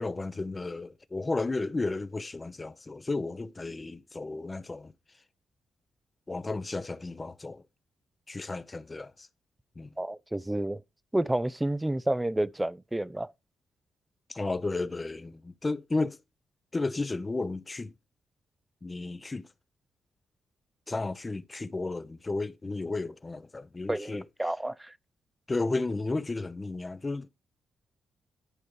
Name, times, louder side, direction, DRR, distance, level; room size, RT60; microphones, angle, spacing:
voice 1, 0.0-4.9 6.3-7.6 8.3-9.3 9.8-9.9 14.3-16.2 16.7-17.9 18.8-19.5 20.9-24.3 25.5-27.3, left 3 dB, 30° left, 0.8 m, -33 dB
voice 2, 10.0-10.8 11.1-13.3 23.9-24.9, right 1 dB, 15° right, 0.6 m, -30 dB
11.0 x 5.1 x 4.7 m
supercardioid pair, 50°, 0 cm